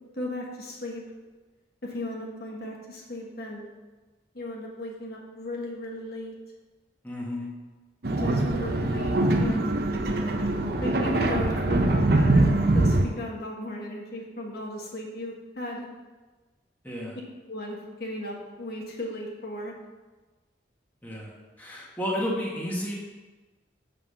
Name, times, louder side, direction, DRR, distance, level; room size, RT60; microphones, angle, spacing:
voice 1, 0.2-1.0 1.8-3.7 4.3-6.3 8.1-9.8 10.8-15.9 17.5-19.7, left 1 dB, 55° left, -2 dB, 1.4 m, -36 dB
voice 2, 7.0-7.5 16.8-17.2 21.0-22.9, equal, 10° left, -5 dB, 1.6 m, -32 dB
sound 1, 8.0-13.1, right 2 dB, 55° right, 0.7 m, -23 dB
7.0 x 5.7 x 5.6 m, 1.3 s
head